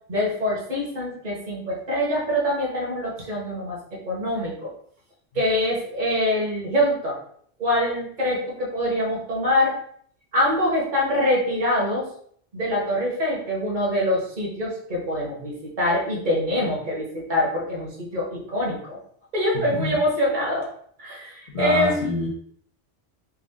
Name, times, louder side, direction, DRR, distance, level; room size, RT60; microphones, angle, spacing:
voice 1, 0.1-3.8 4.0-4.7 5.3-7.2 7.6-9.8 10.3-12.1 12.5-19.0 19.3-20.7 21.0-22.1, left 1 dB, 45° right, -4 dB, 1.3 m, -24 dB
voice 2, 19.5-20.0 21.5-22.3, left 1 dB, 50° left, -4 dB, 0.9 m, -26 dB
3.6 x 2.4 x 3.5 m, 0.63 s
omnidirectional pair, 1.2 m